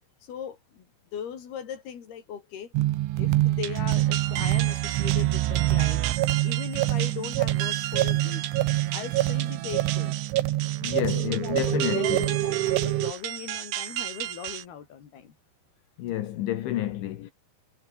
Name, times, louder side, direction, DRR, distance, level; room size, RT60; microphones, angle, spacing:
voice 1, 0.2-0.9 1.1-2.7 3.2-6.0 6.4-8.7 8.9-10.1 10.9-15.4, left 8 dB, 55° left, 5.4 m, -39 dB
sound 1, 2.8-13.1, right 16 dB, 85° right, 3.6 m, -25 dB
sound 2, 3.6-14.6, right 13 dB, 65° right, 3.3 m, -35 dB
voice 2, 10.8-12.4 16.0-17.3, left 13 dB, 75° left, 4.0 m, -30 dB
omnidirectional pair, 5.4 m